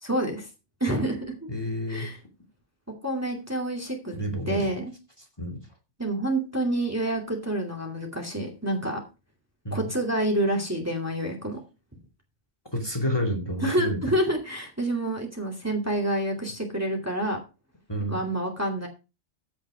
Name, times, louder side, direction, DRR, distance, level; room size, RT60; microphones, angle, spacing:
voice 1, 0.0-0.5 0.8-1.3 1.9-2.2 3.0-4.2 4.5-4.9 6.0-9.0 9.7-11.6 13.6-17.4 18.1-18.9, right 1 dB, 15° right, 1 dB, 2.4 m, -28 dB
voice 2, 1.5-2.1 4.1-4.7 5.4-5.6 9.6-9.9 12.7-14.1 17.9-18.2, equal, 20° left, 3 dB, 2.5 m, -29 dB
15.0 x 5.3 x 4.9 m, 0.30 s
omnidirectional pair, 1.2 m